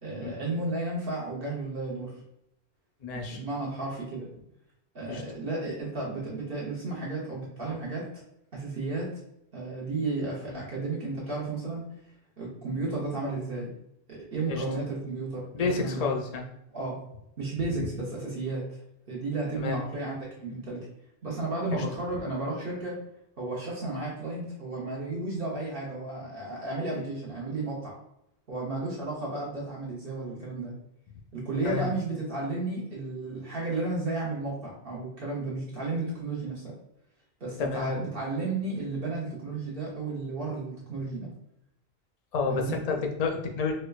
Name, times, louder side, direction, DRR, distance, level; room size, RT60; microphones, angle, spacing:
voice 1, 0.0-2.1 3.1-4.3 4.9-8.1 8.5-9.2 9.5-11.9 12.4-13.7 14.1-16.1 16.7-17.0 17.4-18.8 19.1-20.9 21.2-23.0 23.4-27.9 28.5-30.7 31.3-36.8 37.4-41.3 42.5-42.8, right 2 dB, 60° right, -5 dB, 1.0 m, -33 dB
voice 2, 3.0-3.4 5.1-5.2 7.7-7.8 10.5-10.6 14.5-14.6 15.5-16.4 19.6-19.8 21.7-21.8 31.6-31.9 37.6-37.9 42.3-43.7, left 4 dB, 50° left, 2 dB, 0.5 m, -30 dB
4.2 x 2.2 x 2.3 m, 0.80 s
omnidirectional pair, 1.1 m